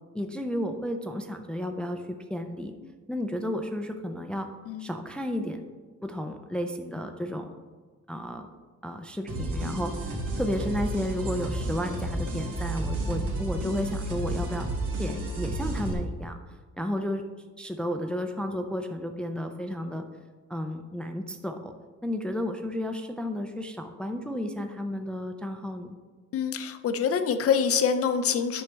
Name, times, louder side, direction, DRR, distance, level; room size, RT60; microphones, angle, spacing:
voice 1, 0.1-2.7 3.1-4.5 4.8-5.6 6.0-7.6 8.1-8.5 8.8-10.1 10.4-14.7 15.0-16.4 16.8-17.2 17.6-20.0 20.5-21.7 22.0-26.0, equal, 5° left, 5 dB, 0.4 m, -32 dB
sound 1, 9.3-15.9, right 1 dB, 80° right, 2.4 m, -31 dB
voice 2, 26.3-28.6, left 7 dB, 50° left, 10 dB, 0.6 m, -25 dB
9.8 x 6.2 x 3.4 m, 1.4 s
cardioid pair, 155°, 30 cm